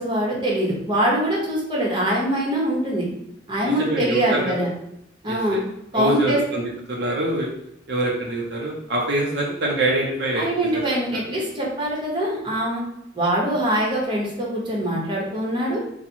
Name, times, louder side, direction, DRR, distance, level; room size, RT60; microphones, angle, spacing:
voice 1, 0.0-3.1 3.5-4.7 5.2-5.6 5.9-6.4 10.4-12.8 13.1-15.8, right 1 dB, 25° right, -3 dB, 1.1 m, -23 dB
voice 2, 3.6-4.5 5.3-5.6 5.9-6.6 6.9-7.5 7.9-10.8, right 1 dB, 65° right, -3 dB, 0.7 m, -25 dB
4.2 x 2.3 x 4.3 m, 0.80 s
head